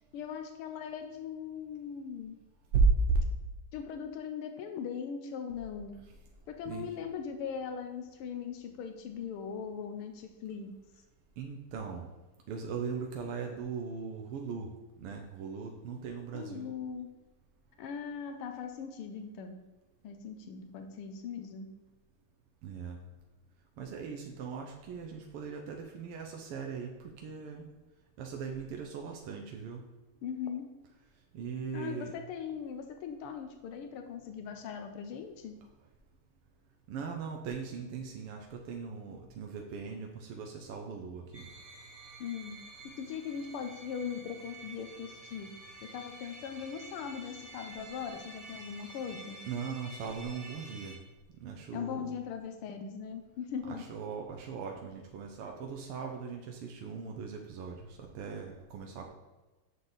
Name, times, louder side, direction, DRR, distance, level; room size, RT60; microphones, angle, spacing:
voice 1, 0.1-2.4 3.7-6.0 6.5-10.7 16.3-17.1 17.8-19.6 20.0-21.7 30.2-30.8 31.7-35.6 42.2-42.6 42.8-45.5 45.8-49.4 51.7-53.8, left 7 dB, 85° left, 6 dB, 1.6 m, -40 dB
voice 2, 2.7-3.2 6.7-6.9 11.4-12.1 12.5-14.7 15.0-16.7 22.6-23.0 23.8-27.7 28.2-29.8 31.3-32.1 36.9-41.5 49.5-51.0 51.4-52.1 53.7-59.1, right 4 dB, 85° right, 1 dB, 1.8 m, -37 dB
sound 1, 41.3-50.9, right 2 dB, 20° right, 1.7 m, -50 dB
7.5 x 6.7 x 4.0 m, 1.2 s
omnidirectional pair, 2.4 m